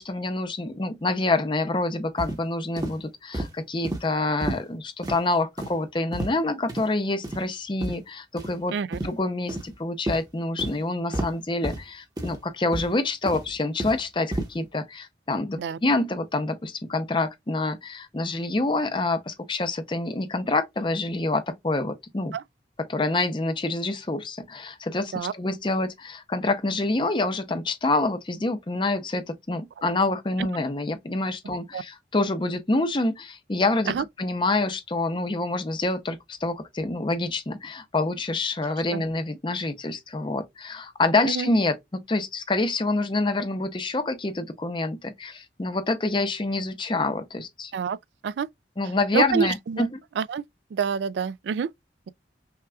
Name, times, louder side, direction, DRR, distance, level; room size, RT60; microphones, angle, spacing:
voice 1, 0.0-8.7 9.0-22.4 22.8-47.7 48.8-50.0, left 2 dB, 30° left, 0.6 m, -27 dB
sound 1, 2.2-2.4 2.8-2.9 3.3-3.5 3.8-4.0 4.4-4.6 5.0-5.2 5.6-5.7 6.1-6.4 6.7-6.8 7.2-7.4 7.8-7.9 8.4-8.5 8.9-9.1 9.5-9.7 10.1-10.2 10.6-10.7 11.1-11.3 11.6-11.8 12.2-12.4 12.7-12.9 13.3-14.0 14.3-14.5, right 1 dB, 20° right, 0.9 m, -30 dB
voice 2, 49.1-49.9 50.2-50.4 50.7-51.7, right 6 dB, 75° right, 0.3 m, -27 dB
5.7 x 2.4 x 2.3 m
head